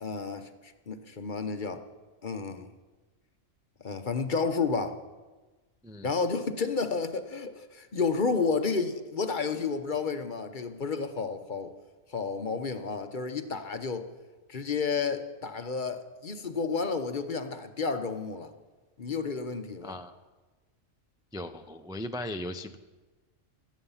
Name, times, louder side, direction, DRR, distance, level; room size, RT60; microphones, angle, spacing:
voice 1, 0.0-1.8 2.2-2.7 3.8-5.0 6.0-11.7 12.1-14.1 14.5-18.5 19.0-20.0, left 4 dB, 45° left, 8 dB, 0.9 m, -31 dB
voice 2, 19.8-20.1 21.3-22.8, left 1 dB, 5° right, 7 dB, 0.4 m, -37 dB
16.5 x 13.0 x 5.6 m, 1.2 s
omnidirectional pair, 1.3 m